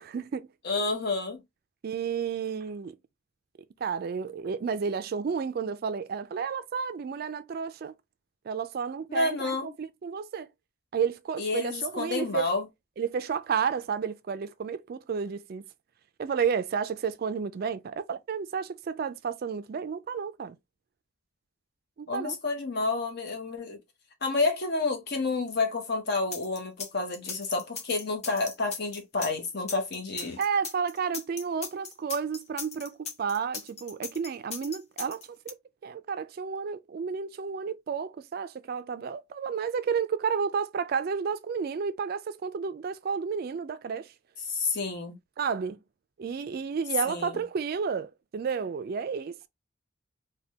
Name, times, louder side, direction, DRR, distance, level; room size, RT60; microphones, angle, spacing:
voice 1, 0.0-0.5 1.8-3.0 3.8-7.9 8.5-10.5 10.9-12.5 13.0-15.6 16.2-20.6 22.0-22.4 30.4-35.6 35.8-44.1 45.4-45.8 46.2-49.5, right 6 dB, 45° right, 0.3 m, -31 dB
voice 2, 0.6-1.4 9.1-9.7 11.4-12.7 22.1-23.8 24.2-30.4 44.5-45.2 47.1-47.4, left 3 dB, 55° left, 0.9 m, -29 dB
sound 1, 26.3-35.5, left 6 dB, 30° left, 0.5 m, -38 dB
3.3 x 2.2 x 2.8 m
head